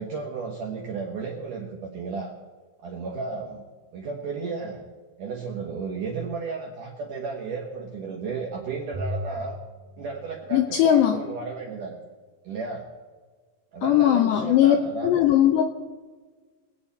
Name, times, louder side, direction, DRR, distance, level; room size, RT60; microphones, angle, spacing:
voice 1, 0.0-2.3 2.8-3.6 3.9-4.8 5.2-9.6 10.0-11.9 12.4-12.8 13.7-15.1, right 4 dB, 70° right, -1 dB, 2.0 m, -33 dB
Bowed string instrument, 8.9-11.3, left 1 dB, 85° right, 1.8 m, -37 dB
voice 2, 10.5-11.2 13.8-14.8 15.0-15.6, left 11 dB, 80° left, 6 dB, 2.5 m, -19 dB
25.0 x 8.8 x 4.2 m, 1.4 s
omnidirectional pair, 5.6 m